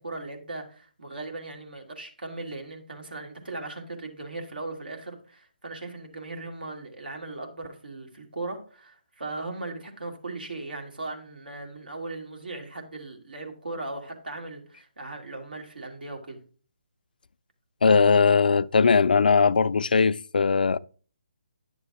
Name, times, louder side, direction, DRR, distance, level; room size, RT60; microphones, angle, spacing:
voice 1, 0.0-16.4, right 2 dB, 75° right, 2.3 m, -38 dB
voice 2, 17.8-20.8, left 5 dB, 65° left, 0.3 m, -20 dB
10.0 x 6.7 x 3.7 m
figure-of-eight pair, 145°, 5 cm